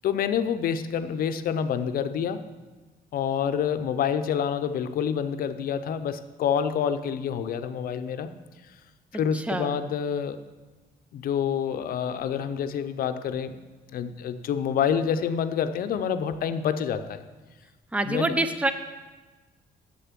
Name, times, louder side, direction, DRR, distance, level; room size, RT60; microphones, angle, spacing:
voice 1, 0.0-2.4 3.1-8.3 9.1-10.4 11.1-13.6 13.9-17.2 18.1-18.3, left 8 dB, 65° left, 10 dB, 0.6 m, -27 dB
voice 2, 9.1-9.8 17.9-18.7, right 2 dB, 10° right, 10 dB, 0.5 m, -27 dB
7.8 x 6.8 x 7.4 m, 1.3 s
cardioid pair, 160°, 16 cm